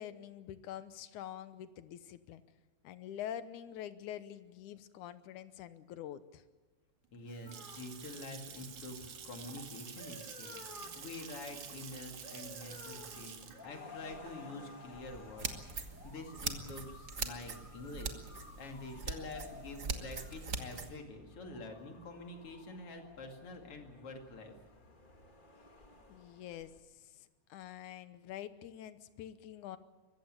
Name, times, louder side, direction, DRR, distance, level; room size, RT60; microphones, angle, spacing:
voice 1, 0.0-2.4 2.8-6.4 26.1-29.8, left 10 dB, 85° left, 13 dB, 2.4 m, -46 dB
Water tap faucet / Sink (filling or washing) / Splash splatter, 7.0-15.9, right 7 dB, 70° right, 3.1 m, -49 dB
voice 2, 7.1-24.5, left 2 dB, 50° left, 4 dB, 3.2 m, -47 dB
sound 1, 7.5-26.8, left 3 dB, 25° left, 1.1 m, -55 dB
sound 2, 15.4-20.9, right 4 dB, 45° right, 1.1 m, -42 dB
23.5 x 15.0 x 8.9 m, 1.3 s
omnidirectional pair, 3.5 m